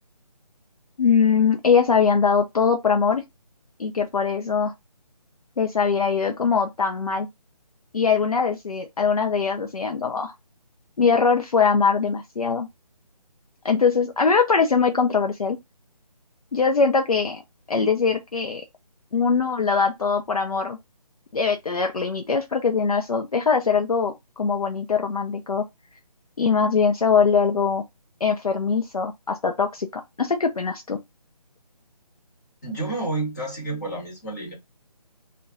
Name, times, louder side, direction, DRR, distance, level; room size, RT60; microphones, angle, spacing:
voice 1, 1.0-3.2 3.8-4.7 5.6-7.3 7.9-10.3 11.0-12.7 13.6-15.6 16.5-17.4 17.7-18.6 19.1-20.8 21.3-25.6 26.4-27.8 28.2-31.0, left 5 dB, 65° left, 0.5 m, -22 dB
voice 2, 32.6-34.5, right 2 dB, 25° left, 1.0 m, -30 dB
2.3 x 2.2 x 3.6 m
figure-of-eight pair, 150°, 20 cm